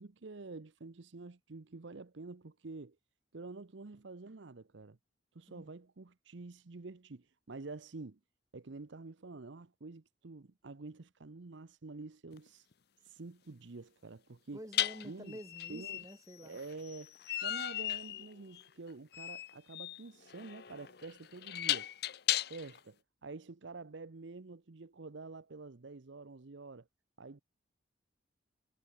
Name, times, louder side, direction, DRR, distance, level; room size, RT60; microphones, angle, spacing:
voice 1, 0.0-3.0 3.3-5.0 5.3-8.2 8.5-12.7 13.0-14.6 15.0-15.4 15.7-16.1 16.4-17.2 17.4-21.9 22.5-26.9 27.2-27.4, right 3 dB, 70° right, 0.8 m, -48 dB
sound 1, 12.3-12.5 14.7-22.8, left 13 dB, 55° left, 0.6 m, -37 dB
voice 2, 14.5-16.6, equal, 15° right, 3.0 m, -49 dB
head